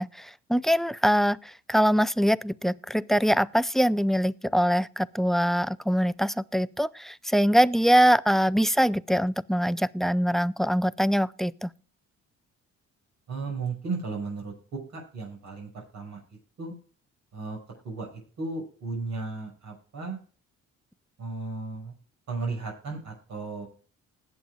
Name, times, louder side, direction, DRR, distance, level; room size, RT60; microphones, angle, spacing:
voice 1, 0.0-11.7, equal, ahead, 0.4 m, -23 dB
voice 2, 13.3-16.2 16.6-16.7 17.3-17.6 17.8-18.1 18.4-20.2 21.2-21.9 22.3-23.7, right 4 dB, 65° right, 5.9 m, -35 dB
20.0 x 8.2 x 2.3 m
cardioid pair, 90°, 30 cm